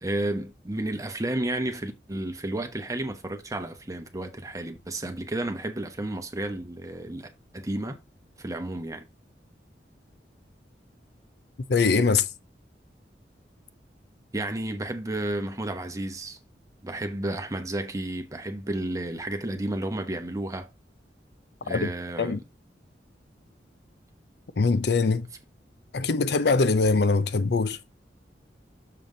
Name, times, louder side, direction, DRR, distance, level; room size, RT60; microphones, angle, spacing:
voice 1, 0.0-7.3 7.5-8.0 8.4-9.1 14.3-16.4 16.8-20.7 21.6-22.4, right 1 dB, 20° right, 1.0 m, -32 dB
voice 2, 11.7-12.3 21.7-21.9 22.2-22.4 24.6-25.3 25.9-27.8, left 4 dB, 65° left, 0.6 m, -22 dB
6.9 x 5.7 x 3.9 m
head